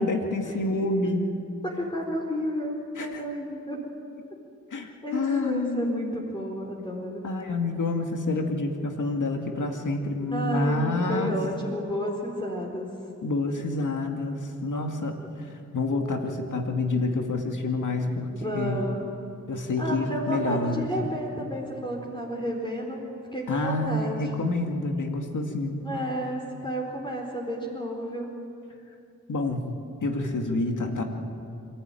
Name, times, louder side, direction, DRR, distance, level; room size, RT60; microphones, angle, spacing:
voice 1, 0.0-1.3 3.0-3.2 4.7-6.3 7.2-11.3 13.2-15.2 15.7-18.3 18.5-18.8 19.5-21.2 23.5-25.8 29.3-29.6 30.0-31.0, left 2 dB, 75° left, 3 dB, 2.2 m, -28 dB
voice 2, 1.6-3.9 5.0-7.2 10.3-12.9 18.3-19.2 19.8-23.0 23.3-24.3 25.8-28.3, equal, 15° left, -2 dB, 4.3 m, -31 dB
27.0 x 12.0 x 9.1 m, 2.6 s
cardioid pair, 45°, 30 cm